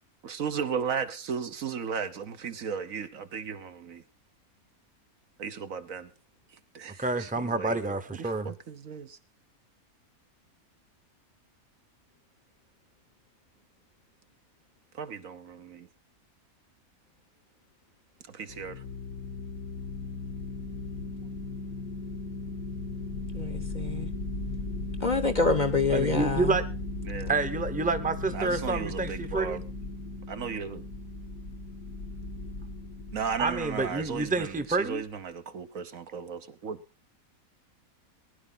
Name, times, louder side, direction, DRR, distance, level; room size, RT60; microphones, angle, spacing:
voice 1, 0.2-4.0 5.4-6.1 6.7-9.2 14.9-15.9 18.3-18.8 27.0-27.3 28.3-29.6 30.3-30.8 33.1-36.8, right 6 dB, 65° right, 1.4 m, -35 dB
voice 2, 7.0-8.5 25.9-26.6 27.3-29.6 33.4-35.0, right 3 dB, 5° right, 0.9 m, -28 dB
sound 1, 18.5-34.7, left 2 dB, 70° left, 1.8 m, -37 dB
voice 3, 23.3-24.1 25.0-26.6, left 3 dB, 35° left, 1.0 m, -26 dB
19.5 x 11.0 x 4.1 m
omnidirectional pair, 1.5 m